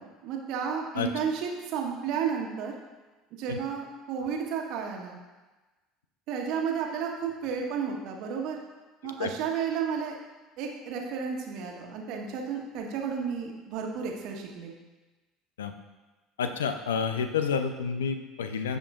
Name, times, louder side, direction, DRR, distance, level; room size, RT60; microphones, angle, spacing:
voice 1, 0.0-2.7 3.4-5.2 6.3-8.6 9.0-10.1 10.6-14.7, right 6 dB, 55° right, 1 dB, 1.3 m, -32 dB
voice 2, 16.4-18.8, left 6 dB, 75° left, 8 dB, 0.6 m, -29 dB
15.0 x 5.2 x 2.5 m, 1.2 s
figure-of-eight pair, 65°, 0 cm